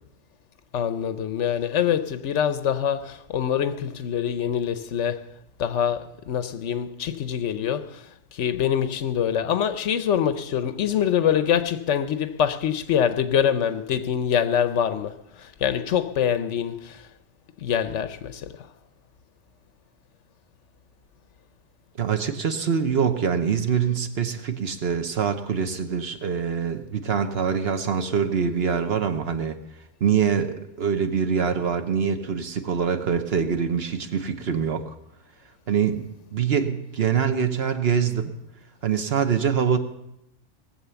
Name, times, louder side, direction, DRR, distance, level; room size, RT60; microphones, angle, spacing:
voice 1, 0.7-5.3 5.6-8.1 8.3-17.1 17.6-18.7, left 9 dB, 75° left, 1.0 m, -25 dB
voice 2, 22.0-29.6 30.0-34.9 35.7-38.3 38.8-39.8, right 7 dB, 55° right, 1.1 m, -24 dB
18.5 x 7.4 x 6.9 m
omnidirectional pair, 1.2 m